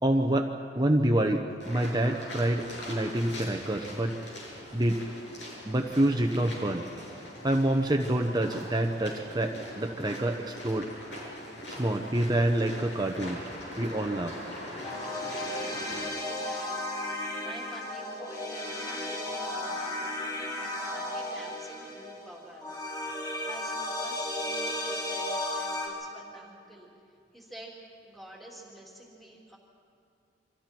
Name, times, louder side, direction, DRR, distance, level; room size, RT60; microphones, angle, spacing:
voice 1, 0.0-4.2 4.7-5.0 5.7-6.8 7.4-10.9 11.8-13.4 13.8-14.4, right 1 dB, 20° right, 3 dB, 0.9 m, -27 dB
sound 1, 1.6-16.0, left 1 dB, 80° left, 7.5 m, -42 dB
sound 2, 14.8-25.9, left 1 dB, 20° left, 4.2 m, -34 dB
voice 2, 15.5-20.1 20.6-22.7 23.4-26.9 27.3-27.7 28.0-29.6, right 1 dB, ahead, -3 dB, 3.1 m, -49 dB
29.0 x 25.0 x 4.6 m, 2.4 s
head